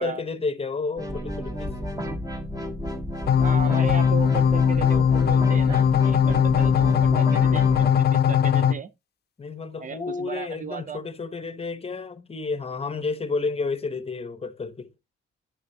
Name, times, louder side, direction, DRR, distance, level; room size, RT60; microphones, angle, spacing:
voice 1, 0.0-1.7 9.4-14.9, left 4 dB, 30° left, 0.9 m, -31 dB
sound 1, 1.0-7.9, equal, 15° right, 1.5 m, -32 dB
sound 2, 3.3-8.7, left 7 dB, 50° left, 0.6 m, -20 dB
voice 2, 3.4-7.8 8.1-8.9 9.8-11.0, right 6 dB, 40° right, 0.5 m, -35 dB
9.3 x 6.6 x 2.7 m
cardioid pair, 120°, 21 cm